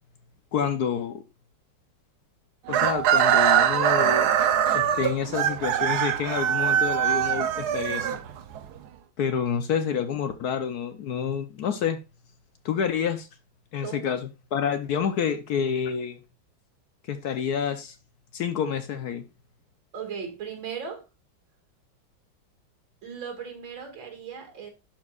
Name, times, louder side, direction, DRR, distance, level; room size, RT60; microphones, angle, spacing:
voice 1, 0.5-1.2 2.7-4.3 4.7-8.1 9.2-12.0 12.6-13.3 13.7-16.2 17.1-18.0 18.3-19.2, left 7 dB, 65° left, 1.1 m, -28 dB
Chicken rooster, 2.7-8.7, right 9 dB, 65° right, 1.0 m, -22 dB
voice 2, 19.9-21.1 23.0-24.7, right 6 dB, 85° right, 2.7 m, -37 dB
11.5 x 4.6 x 2.4 m
omnidirectional pair, 2.1 m